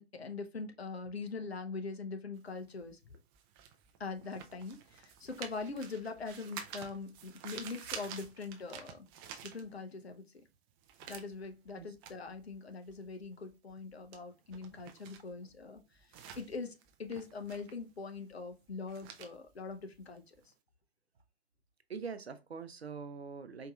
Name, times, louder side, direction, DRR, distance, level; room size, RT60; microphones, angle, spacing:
voice 1, 0.0-3.0 4.0-9.1 9.4-10.2 11.1-15.8 16.2-20.3, left 4 dB, 85° left, 0.8 m, -42 dB
sound 1, 2.4-10.1 10.4-20.5, right 8 dB, 25° right, 0.5 m, -50 dB
voice 2, 21.9-23.7, right 5 dB, 90° right, 0.7 m, -43 dB
4.6 x 2.9 x 2.3 m
figure-of-eight pair, 120°, 31 cm